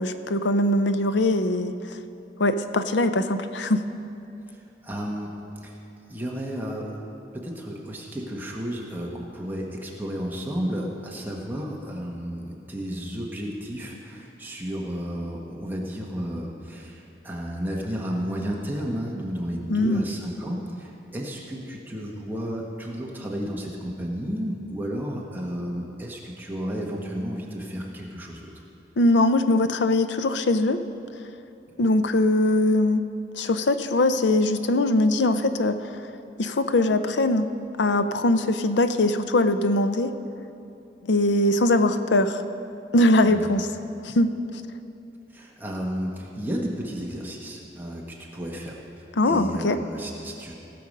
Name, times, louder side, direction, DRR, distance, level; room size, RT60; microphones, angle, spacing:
voice 1, 0.0-2.0 2.4-3.8 19.7-20.0 29.0-30.8 31.8-33.0 33.3-35.8 36.4-37.5 37.8-40.1 41.0-42.4 42.9-43.7 44.0-44.3 49.2-49.8, left 2 dB, 80° left, 10 dB, 0.6 m, -21 dB
voice 2, 4.5-5.3 5.6-5.8 6.1-7.0 7.3-28.5 43.3-43.5 45.3-50.5, equal, 10° right, -2 dB, 1.2 m, -32 dB
18.0 x 6.9 x 5.3 m, 2.8 s
head